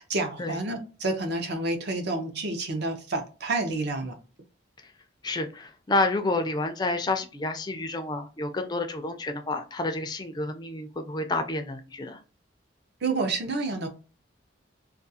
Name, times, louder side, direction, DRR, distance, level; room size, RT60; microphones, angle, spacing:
voice 1, 0.0-4.2 13.0-13.9, right 2 dB, 55° right, 0.6 m, -29 dB
voice 2, 5.2-12.2, left 2 dB, 20° left, 0.3 m, -29 dB
2.4 x 2.3 x 2.7 m
head